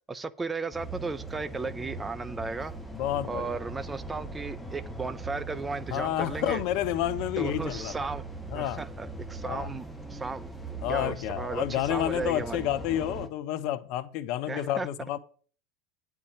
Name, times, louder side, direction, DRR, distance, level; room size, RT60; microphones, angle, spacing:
voice 1, 0.1-2.7 3.3-6.6 7.4-8.3 8.5-12.7 14.5-14.9, right 4 dB, 15° right, 0.6 m, -35 dB
sound 1, 0.7-13.3, right 2 dB, ahead, 1.3 m, -40 dB
voice 2, 2.9-3.6 5.9-7.9 8.5-8.8 9.4-9.7 10.8-15.2, left 12 dB, 55° left, 0.8 m, -30 dB
9.9 x 4.6 x 7.1 m
hypercardioid pair, 80°, 0 cm